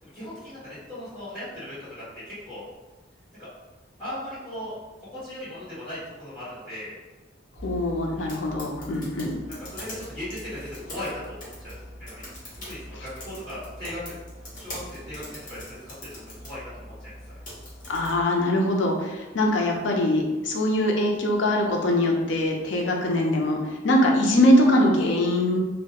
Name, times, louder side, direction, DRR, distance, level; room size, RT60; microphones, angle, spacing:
voice 1, 0.0-2.7 3.4-3.5 4.0-7.0 8.1-8.4 9.5-12.3 12.7-14.2 14.6-15.6 15.8-17.1, left 1 dB, 10° left, -16 dB, 1.3 m, -38 dB
voice 2, 7.6-9.3 17.9-25.6, left 1 dB, 75° left, 1 dB, 0.5 m, -22 dB
sound 1, 7.6-18.2, left 1 dB, 45° left, 0.8 m, -42 dB
2.2 x 2.1 x 2.8 m, 1.2 s
head